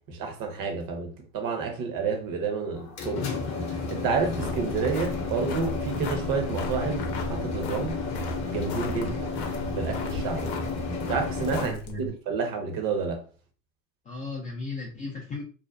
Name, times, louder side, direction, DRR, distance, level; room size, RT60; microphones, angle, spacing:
voice 1, 0.1-3.3 3.7-8.0 8.5-9.3 9.8-10.5 11.1-13.2, right 5 dB, 45° right, 0.8 m, -30 dB
sound 1, 2.7-11.7, left 3 dB, 35° left, 0.7 m, -32 dB
sound 2, 4.2-12.1, left 3 dB, 75° left, 0.7 m, -38 dB
voice 2, 11.6-12.1 14.1-15.4, left 2 dB, 20° left, 0.3 m, -36 dB
2.5 x 2.1 x 2.2 m
hypercardioid pair, 85°, 49 cm